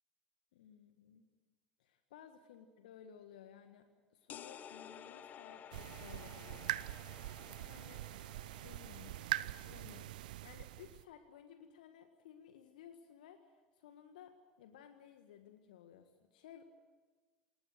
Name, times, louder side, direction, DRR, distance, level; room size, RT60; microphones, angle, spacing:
voice 1, 0.5-1.3 1.8-7.1 7.5-8.1 8.6-16.6, left 9 dB, 65° left, 8 dB, 1.6 m, -57 dB
sound 1, 4.3-9.9, left 9 dB, 35° left, 1.1 m, -54 dB
sound 2, 5.7-11.0, right 15 dB, 65° right, 0.7 m, -43 dB
28.0 x 20.0 x 6.6 m, 1.4 s
figure-of-eight pair, 75°, 5 cm